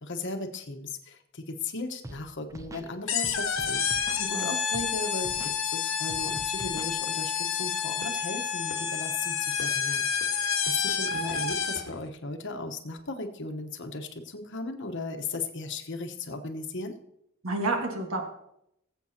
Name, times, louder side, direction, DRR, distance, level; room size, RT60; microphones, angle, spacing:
voice 1, 0.0-17.0, left 3 dB, 65° left, 6 dB, 1.1 m, -37 dB
Scratching (performance technique), 2.0-2.2 2.5-2.9 3.2-4.3 4.7-4.9 5.2-5.6 6.1-7.0, right 1 dB, 15° right, 0.6 m, -42 dB
sound 1, 3.1-12.0, left 7 dB, 85° left, 1.4 m, -29 dB
voice 2, 4.2-4.5 17.4-18.2, right 2 dB, 85° right, 3 dB, 1.6 m, -30 dB
20.5 x 7.6 x 2.8 m, 0.78 s
head